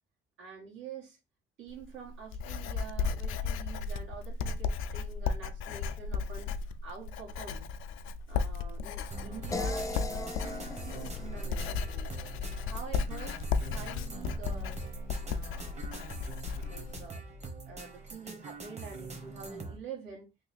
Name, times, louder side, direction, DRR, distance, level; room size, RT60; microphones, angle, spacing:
voice 1, 0.4-1.2 1.6-6.5 6.8-7.7 8.3-12.1 12.6-13.4 13.7-14.9 15.2-15.9 16.5-17.2 17.7-20.3, right 6 dB, 80° right, 1.7 m, -46 dB
Writing, 1.7-17.1, left 5 dB, 85° left, 0.4 m, -35 dB
sound 1, 9.1-19.8, right 3 dB, 35° right, 1.1 m, -44 dB
sound 2, 9.5-12.6, left 2 dB, 15° left, 0.5 m, -39 dB
3.2 x 2.4 x 4.1 m
cardioid pair, 90°, 20 cm